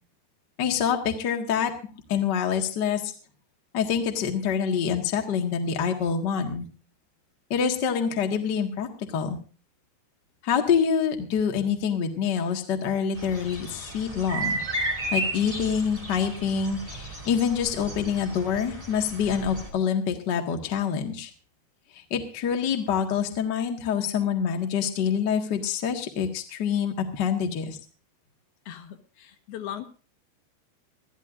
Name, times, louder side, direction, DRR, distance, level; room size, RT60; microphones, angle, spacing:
voice 1, 0.6-1.7 2.1-3.1 3.7-6.6 7.5-8.9 9.1-9.4 10.4-14.6 15.1-21.3 21.9-27.8, left 7 dB, 85° left, 3 dB, 0.9 m, -26 dB
sound 1, 13.1-19.7, right 2 dB, 15° right, 1.5 m, -34 dB
voice 2, 28.7-29.9, left 10 dB, 65° left, 6 dB, 3.0 m, -38 dB
22.5 x 14.0 x 2.5 m, 0.36 s
omnidirectional pair, 5.1 m